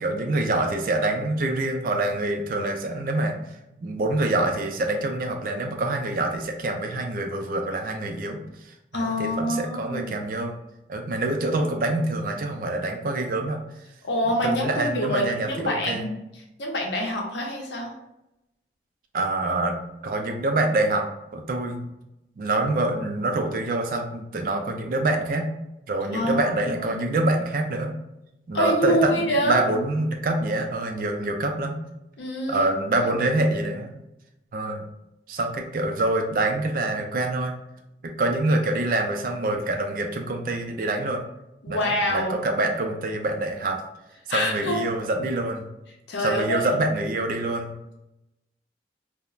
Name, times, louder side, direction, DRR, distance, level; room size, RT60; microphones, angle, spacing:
voice 1, 0.0-3.3 3.8-10.6 10.9-13.6 14.4-16.1 19.1-21.0 21.3-21.9 22.4-25.5 25.9-28.0 28.5-31.8 32.5-34.0 34.5-34.9 35.3-37.5 38.0-41.2 41.7-43.8 44.3-45.7 46.2-47.7, right 2 dB, 50° right, 4 dB, 0.3 m, -26 dB
voice 2, 8.9-10.0 14.0-16.1 16.6-17.9 26.1-26.9 28.5-29.6 32.2-32.7 33.0-33.1 41.6-42.5 44.3-44.8 46.1-46.7, equal, 80° left, 0 dB, 0.6 m, -26 dB
3.0 x 2.0 x 2.3 m, 0.90 s
head